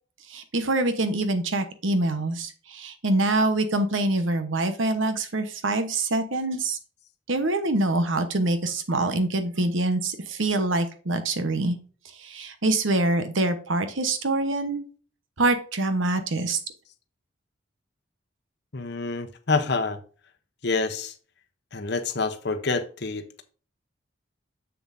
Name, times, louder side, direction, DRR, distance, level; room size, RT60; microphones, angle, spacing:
voice 1, 0.3-6.8 7.3-11.8 12.2-14.8 15.4-16.6, right 2 dB, 75° right, 1.1 m, -25 dB
voice 2, 18.7-20.0 20.6-21.1 21.7-23.4, left 3 dB, 55° left, 0.9 m, -27 dB
7.1 x 6.9 x 2.7 m
head